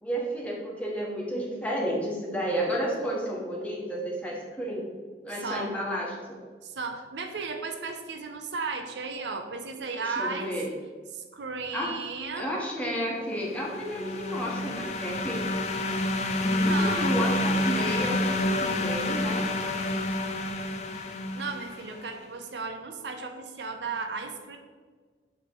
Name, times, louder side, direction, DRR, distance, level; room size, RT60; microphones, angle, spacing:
voice 1, 0.0-4.9 5.2-6.2 9.9-10.7 11.7-11.9 12.4-15.4 16.4-19.5, equal, 10° left, -4 dB, 1.2 m, -31 dB
voice 2, 5.4-5.7 6.6-10.5 11.1-12.5 16.6-17.3 21.3-24.6, right 4 dB, 80° right, 5 dB, 0.6 m, -35 dB
sound 1, 13.4-22.0, left 1 dB, 40° left, 0.5 m, -28 dB
7.7 x 3.2 x 4.6 m, 1.5 s
head